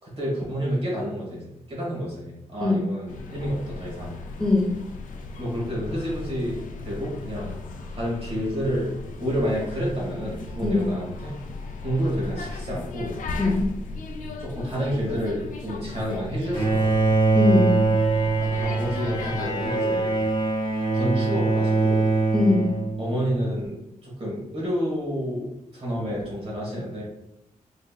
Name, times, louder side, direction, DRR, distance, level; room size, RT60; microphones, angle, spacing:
voice 1, 0.0-4.2 5.4-7.6 7.9-8.9 9.2-11.3 11.8-13.2 14.4-17.1 18.6-20.2 20.9-22.1 23.0-27.0, equal, 50° right, -4 dB, 1.4 m, -29 dB
sound 1, 3.1-19.5, left 3 dB, 80° left, 0.4 m, -37 dB
voice 2, 4.4-4.7 10.6-10.9 13.4-13.7 17.3-17.8 22.3-22.7, left 2 dB, 5° left, -4 dB, 0.6 m, -21 dB
Bowed string instrument, 16.5-23.3, right 3 dB, 30° left, 1.0 m, -23 dB
3.5 x 3.2 x 2.4 m, 0.84 s
wide cardioid pair, 155°, 13 cm